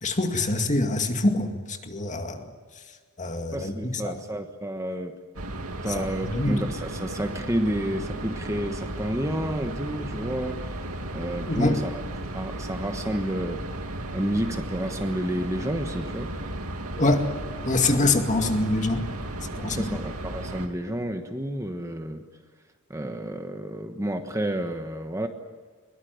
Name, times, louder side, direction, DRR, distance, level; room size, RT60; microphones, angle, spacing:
voice 1, 0.0-2.5 3.2-4.1 5.9-6.1 6.3-6.6 11.5-11.8 17.0-17.3 17.7-19.1 19.6-19.8, left 2 dB, 35° left, 5 dB, 2.2 m, -24 dB
voice 2, 3.5-5.2 5.8-10.7 11.1-12.0 12.3-13.7 14.1-16.4 18.4-18.5 19.6-22.3 22.9-25.3, right 1 dB, 15° right, 6 dB, 1.2 m, -30 dB
sound 1, 5.4-20.7, right 1 dB, 80° right, 2.6 m, -35 dB
22.5 x 22.5 x 9.4 m, 1.4 s
head